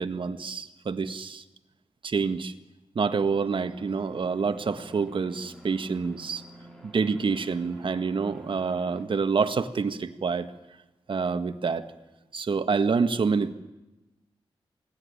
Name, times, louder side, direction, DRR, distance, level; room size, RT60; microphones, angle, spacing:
voice 1, 0.0-1.4 2.0-2.5 2.9-6.4 6.8-10.5 11.1-11.9 12.3-13.5, right 5 dB, 60° right, 9 dB, 1.7 m, -27 dB
sound 1, 3.7-9.1, equal, 5° left, 5.5 m, -49 dB
27.5 x 19.0 x 9.9 m, 1.0 s
wide cardioid pair, 90°, 10 cm